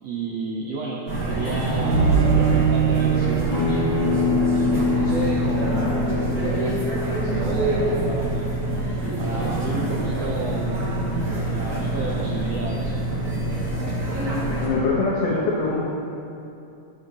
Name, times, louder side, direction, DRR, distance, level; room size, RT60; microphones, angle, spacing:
voice 1, 0.0-4.0 4.5-8.5 9.2-13.0, right 3 dB, 85° right, -2 dB, 1.4 m, -32 dB
sound 1, 1.1-14.7, right 2 dB, 35° right, 1.8 m, -25 dB
Bowed string instrument, 1.6-6.8, right 11 dB, 70° right, 2.6 m, -27 dB
Acoustic guitar, 3.5-8.7, left 4 dB, 90° left, 3.5 m, -26 dB
voice 2, 14.6-15.9, left 3 dB, 75° left, -6 dB, 2.5 m, -23 dB
11.5 x 10.5 x 2.9 m, 2.6 s
omnidirectional pair, 3.8 m